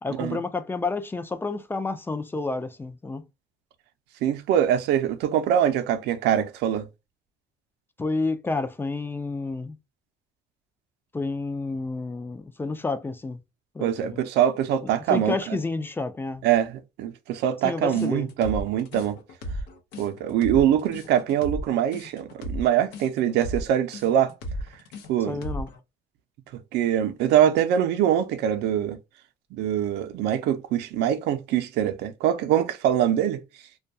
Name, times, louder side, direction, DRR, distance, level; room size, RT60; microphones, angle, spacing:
voice 1, 0.0-3.3 8.0-9.8 11.1-13.4 13.7-14.2 15.1-16.5 17.6-18.3 25.3-25.7, left 3 dB, 15° left, 0.4 m, -30 dB
voice 2, 4.2-6.9 13.8-15.6 16.4-19.2 20.0-24.3 25.1-25.4 26.7-29.0 29.5-33.4, right 10 dB, 80° right, 0.5 m, -23 dB
sound 1, 17.9-25.8, equal, 90° left, 0.7 m, -35 dB
2.2 x 2.2 x 2.6 m
cardioid pair, 110°, 17 cm